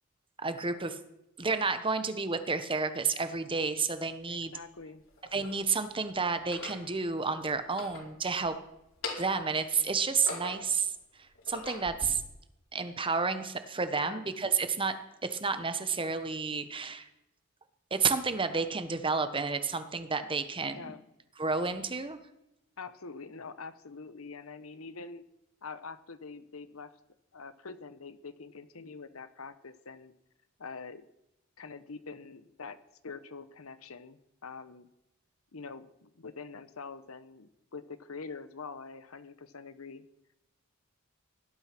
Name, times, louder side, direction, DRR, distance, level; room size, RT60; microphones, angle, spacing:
voice 1, 0.4-1.0 1.4-4.5 5.3-8.6 9.2-10.9 11.5-12.2 12.7-17.1 17.9-21.0 21.4-22.2, right 4 dB, 25° right, 10 dB, 1.2 m, -31 dB
sound 1, 3.9-4.0 4.8-5.6 6.4-6.9 7.6-8.5 8.9-9.5 10.0-10.8 11.3-12.1, left 3 dB, 65° left, 4.8 m, -41 dB
voice 2, 4.3-5.0 13.9-14.2 20.7-21.0 22.8-25.2 25.6-26.9 27.3-30.1 30.6-31.0 31.6-32.8 33.0-34.9 35.5-40.0, left 4 dB, 85° left, 12 dB, 1.1 m, -45 dB
17.5 x 12.0 x 6.0 m, 0.88 s
head